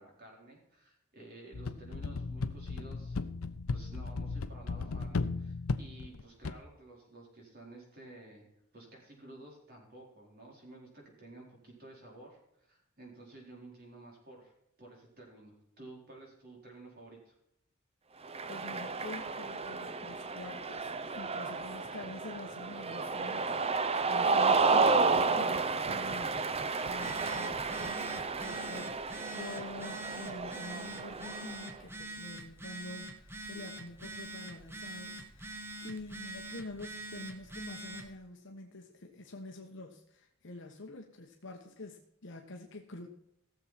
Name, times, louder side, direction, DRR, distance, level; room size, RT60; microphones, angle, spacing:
voice 1, 0.0-3.2 3.7-8.5 8.7-14.5 14.8-17.3, right 2 dB, 45° right, -2 dB, 4.4 m, -52 dB
sound 1, 1.5-6.5, left 3 dB, 85° left, 0.7 m, -36 dB
Cheering, 18.2-31.7, right 4 dB, 30° right, 0.6 m, -32 dB
voice 2, 18.5-43.1, left 2 dB, 60° left, 2 dB, 1.2 m, -47 dB
Telephone, 27.0-38.1, right 2 dB, 10° right, 1.1 m, -45 dB
16.0 x 7.3 x 4.4 m, 0.77 s
head